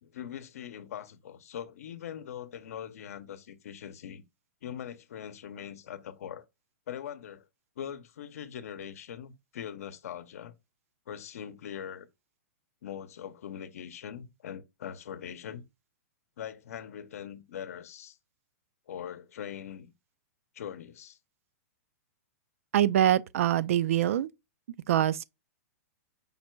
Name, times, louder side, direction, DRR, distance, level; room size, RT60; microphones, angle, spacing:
voice 1, 0.0-4.2 4.6-6.4 6.9-7.4 7.8-10.5 11.1-12.1 12.8-15.6 16.4-18.2 18.9-19.9 20.5-21.2, left 9 dB, 70° left, 0.7 m, -41 dB
voice 2, 22.7-24.3 24.9-25.2, right 11 dB, 60° right, 0.4 m, -24 dB
5.4 x 2.2 x 4.4 m
hypercardioid pair, 165°, 8 cm